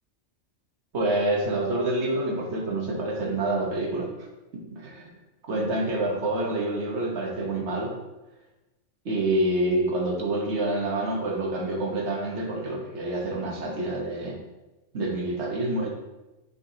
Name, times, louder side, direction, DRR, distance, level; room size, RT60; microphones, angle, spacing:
voice 1, 0.9-4.3 4.5-5.1 5.5-8.0 9.0-14.4 14.9-15.9, right 1 dB, 65° right, 0 dB, 1.4 m, -27 dB
8.9 x 4.0 x 2.8 m, 1.1 s
omnidirectional pair, 1.2 m